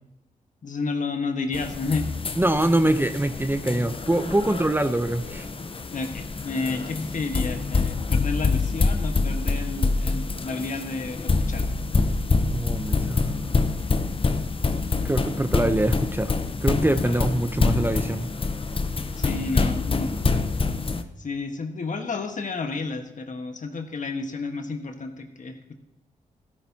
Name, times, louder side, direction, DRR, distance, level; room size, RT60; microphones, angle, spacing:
voice 1, 0.6-2.1 5.9-11.6 19.2-20.3 21.2-25.7, left 3 dB, 55° left, 5 dB, 1.5 m, -31 dB
sound 1, 1.5-21.0, left 4 dB, 35° left, 0.9 m, -26 dB
voice 2, 2.4-5.5 12.5-13.6 15.0-16.3 16.6-18.3, right 1 dB, 15° right, 9 dB, 0.8 m, -24 dB
13.5 x 12.5 x 2.9 m, 0.92 s
cardioid pair, 55°, 16 cm